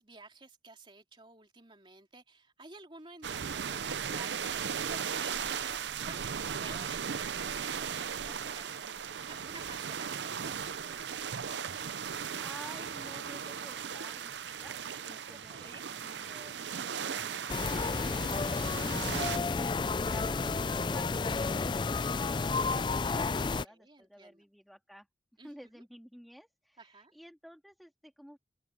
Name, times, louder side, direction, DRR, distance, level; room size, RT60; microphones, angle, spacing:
voice 1, 0.0-4.6 4.9-11.2 15.3-15.8 23.6-24.4 25.4-25.9 26.8-27.1, right 3 dB, 30° right, 3.2 m, -53 dB
sound 1, 3.2-19.4, right 7 dB, 80° right, 0.7 m, -37 dB
voice 2, 11.9-14.8 15.0-19.3 19.9-25.1 25.4-28.4, equal, ahead, 2.8 m, -53 dB
sound 2, 17.5-23.6, left 4 dB, 25° left, 0.4 m, -31 dB
open air
head